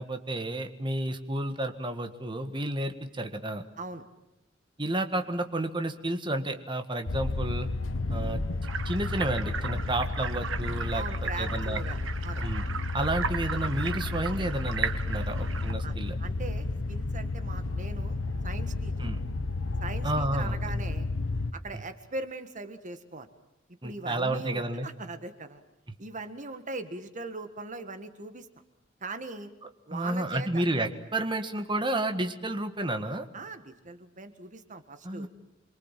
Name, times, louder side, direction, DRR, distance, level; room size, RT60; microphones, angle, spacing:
voice 1, 0.0-3.6 4.8-7.7 8.1-8.4 8.9-11.0 11.4-11.8 12.4-12.6 12.9-16.2 19.0-19.2 20.0-20.6 23.8-24.9 29.9-33.3 35.0-35.3, right 1 dB, 25° right, 6 dB, 1.7 m, -31 dB
sound 1, 7.1-21.5, left 3 dB, 75° left, 1.3 m, -32 dB
sound 2, 8.6-15.7, right 6 dB, 70° right, 1.6 m, -36 dB
voice 2, 10.9-12.4 13.1-13.2 15.8-18.2 18.4-19.1 19.8-21.1 21.5-23.3 23.7-25.6 26.0-28.5 29.0-29.5 29.9-30.6 33.3-35.3, right 3 dB, 40° right, 9 dB, 1.7 m, -40 dB
28.0 x 23.5 x 7.5 m, 0.88 s
head